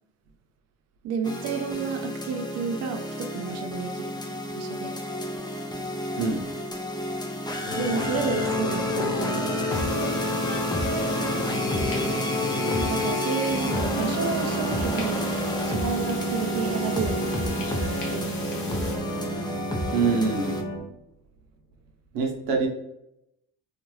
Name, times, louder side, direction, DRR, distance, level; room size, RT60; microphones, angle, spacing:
voice 1, 1.0-5.0 7.8-10.0 12.8-15.2 15.6-18.8, right 6 dB, 50° right, 5 dB, 0.4 m, -32 dB
sound 1, 1.2-20.6, equal, 15° left, 0.5 m, -31 dB
sound 2, 5.4-5.5 7.6-20.8, left 1 dB, 55° left, 1.1 m, -30 dB
sound 3, 9.7-18.9, left 2 dB, 80° left, 0.9 m, -38 dB
voice 2, 19.9-20.6 22.1-22.7, right 4 dB, 85° right, 1 dB, 0.8 m, -24 dB
2.5 x 2.3 x 3.1 m, 0.83 s
supercardioid pair, 80°, 34 cm